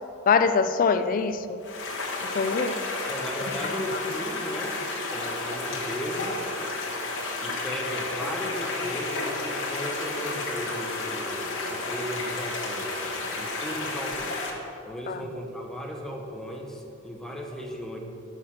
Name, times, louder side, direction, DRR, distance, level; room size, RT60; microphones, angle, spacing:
voice 1, 0.3-1.6 2.3-2.7 3.6-4.0 15.1-15.2, left 5 dB, 45° left, 11 dB, 0.3 m, -24 dB
sound 1, 1.6-14.5, left 3 dB, 80° left, 1.5 m, -32 dB
voice 2, 3.1-4.8 5.0-6.4 7.4-14.4 14.8-18.0, equal, 5° left, 0 dB, 0.8 m, -36 dB
6.4 x 5.7 x 6.2 m, 2.7 s
head